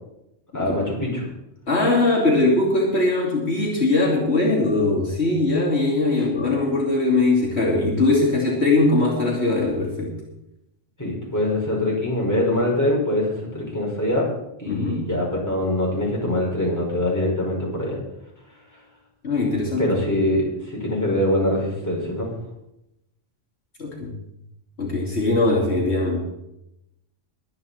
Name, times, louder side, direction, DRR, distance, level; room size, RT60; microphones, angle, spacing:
voice 1, 0.5-1.3 6.2-6.3 11.0-14.3 14.6-18.0 19.8-22.3, left 1 dB, 15° left, -4 dB, 5.5 m, -23 dB
voice 2, 1.7-10.1 14.7-15.1 19.2-19.9 23.8-24.1 24.8-26.2, left 2 dB, 60° left, -4 dB, 3.2 m, -21 dB
22.5 x 9.4 x 4.3 m, 0.85 s
omnidirectional pair, 1.3 m